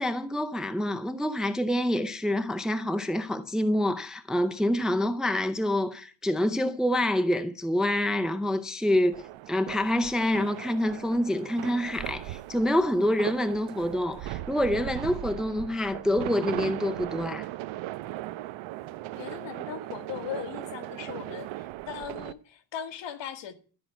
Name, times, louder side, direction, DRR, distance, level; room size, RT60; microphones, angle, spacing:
voice 1, 0.0-17.5, left 1 dB, ahead, 0.5 m, -27 dB
sound 1, 9.1-22.3, right 15 dB, 85° right, 0.8 m, -38 dB
voice 2, 19.2-23.5, left 9 dB, 70° left, 1.9 m, -39 dB
13.5 x 5.8 x 9.1 m
cardioid pair, 170°, 45 cm